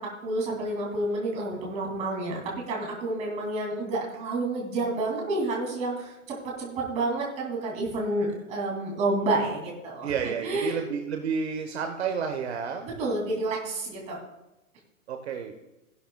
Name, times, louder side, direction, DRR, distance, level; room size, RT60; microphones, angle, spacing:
voice 1, 0.0-2.4 2.7-10.8 12.8-14.2, right 2 dB, 15° right, -2 dB, 2.6 m, -29 dB
voice 2, 10.0-12.9 15.1-15.5, right 6 dB, 50° right, 5 dB, 1.1 m, -30 dB
16.5 x 11.0 x 2.3 m, 1.0 s
hypercardioid pair, 170°, 43 cm